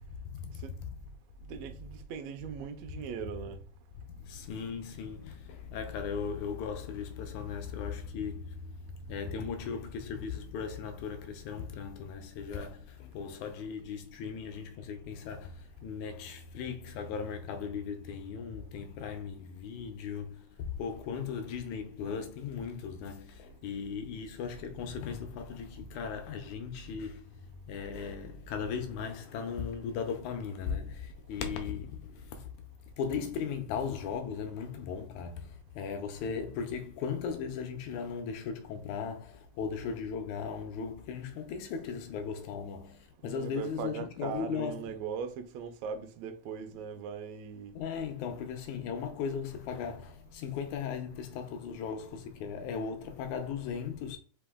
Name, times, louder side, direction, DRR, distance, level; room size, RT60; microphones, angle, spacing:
voice 1, 1.5-3.6 43.2-47.7, right 7 dB, 75° right, 1.6 m, -39 dB
voice 2, 4.2-8.8 9.1-27.4 27.7-32.5 33.0-44.9 46.7-46.8 47.8-54.2, left 6 dB, 75° left, 1.9 m, -37 dB
5.1 x 2.8 x 3.5 m
omnidirectional pair, 3.7 m